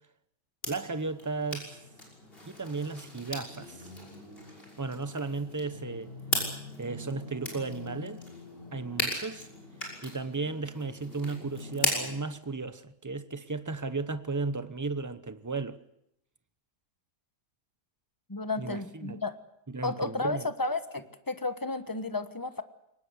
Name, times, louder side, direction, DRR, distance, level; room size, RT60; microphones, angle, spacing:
sound 1, 0.6-12.2, left 1 dB, 35° left, 6.5 m, -37 dB
voice 1, 0.7-1.7 2.5-3.9 4.8-6.1 6.8-8.2 8.7-9.5 10.0-15.8 18.6-19.2 19.7-20.5, right 3 dB, 15° right, 0.6 m, -35 dB
voice 2, 18.3-19.4 19.8-22.6, left 3 dB, 15° left, 1.2 m, -32 dB
23.0 x 20.0 x 8.1 m
omnidirectional pair, 1.8 m